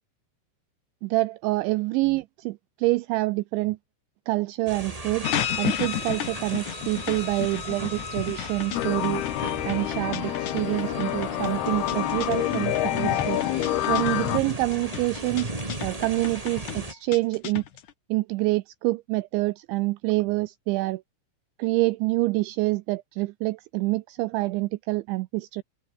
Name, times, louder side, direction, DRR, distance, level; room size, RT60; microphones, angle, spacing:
voice 1, 1.0-3.8 4.3-5.3 5.6-9.3 9.7-13.4 13.9-15.5 15.8-17.6 18.1-21.0 21.6-25.6, right 21 dB, 80° right, 2.8 m, -26 dB
sound 1, 4.7-16.9, right 2 dB, 45° right, 0.4 m, -37 dB
sound 2, 5.2-17.9, left 10 dB, 60° left, 2.3 m, -33 dB
sound 3, 8.7-14.4, left 16 dB, 75° left, 2.4 m, -28 dB
omnidirectional pair, 5.6 m